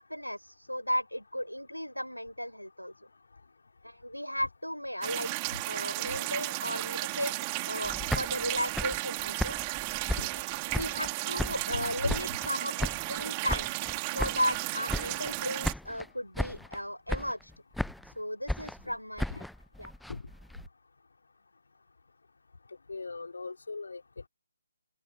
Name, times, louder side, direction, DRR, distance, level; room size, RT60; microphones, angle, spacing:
voice 1, 0.0-2.9 3.8-5.3 5.7-7.4 7.6-9.6 10.7-13.7 14.1-17.5 18.1-19.5 19.8-19.9, equal, 90° left, 5.6 m, -35 dB
sound 1, 5.0-15.7, right 27 dB, 20° right, 3.0 m, -34 dB
sound 2, 7.8-11.1 11.4-12.5 12.8-14.6 14.9-15.4 15.6-16.1 16.3-16.8 17.1-18.1 18.5-20.7, left 1 dB, ahead, 0.8 m, -35 dB
voice 2, 11.7-12.2 19.3-19.4 20.1-20.2 22.9-24.0, left 4 dB, 60° left, 4.8 m, -37 dB
open air
figure-of-eight pair, 145°, 0 cm